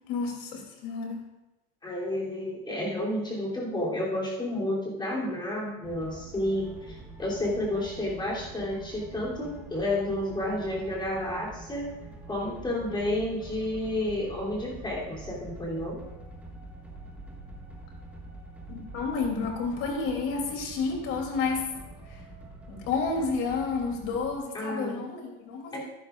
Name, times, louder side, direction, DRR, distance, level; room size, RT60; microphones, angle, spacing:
voice 1, 0.1-1.2 18.7-21.7 22.1-22.2 22.7-25.8, left 4 dB, 45° left, 1 dB, 2.8 m, -30 dB
voice 2, 1.8-11.9 12.3-16.0 24.5-25.0 25.7-25.8, left 1 dB, 15° left, -4 dB, 2.9 m, -31 dB
sound 1, 5.8-24.4, right 2 dB, 5° right, 1.5 m, -45 dB
12.5 x 11.0 x 2.4 m, 0.99 s
supercardioid pair, 135°, 31 cm